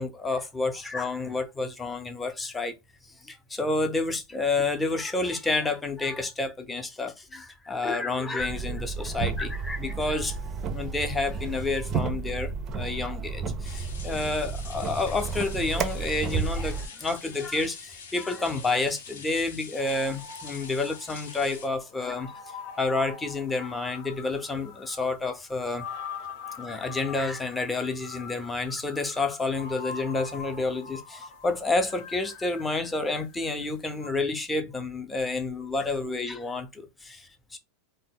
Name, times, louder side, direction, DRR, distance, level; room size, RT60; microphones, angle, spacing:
voice 1, 0.0-2.7 3.2-10.4 10.7-22.3 22.8-25.9 26.6-37.6, left 3 dB, 15° left, 0.5 m, -29 dB
sound 1, 8.4-16.9, right 5 dB, 35° right, 0.4 m, -32 dB
sound 2, 13.6-21.7, left 5 dB, 85° left, 0.8 m, -45 dB
sound 3, 19.8-33.7 33.9-34.1, left 6 dB, 55° left, 0.8 m, -43 dB
2.1 x 2.1 x 3.5 m
supercardioid pair, 120°, 0 cm